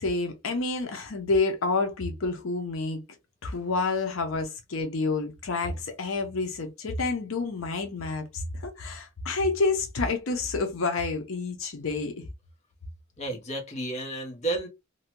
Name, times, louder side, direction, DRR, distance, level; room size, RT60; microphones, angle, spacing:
voice 1, 0.0-3.0 3.4-12.2, left 3 dB, 80° left, 0.6 m, -29 dB
voice 2, 13.2-14.7, right 2 dB, 35° left, 0.8 m, -31 dB
2.7 x 2.1 x 2.9 m
head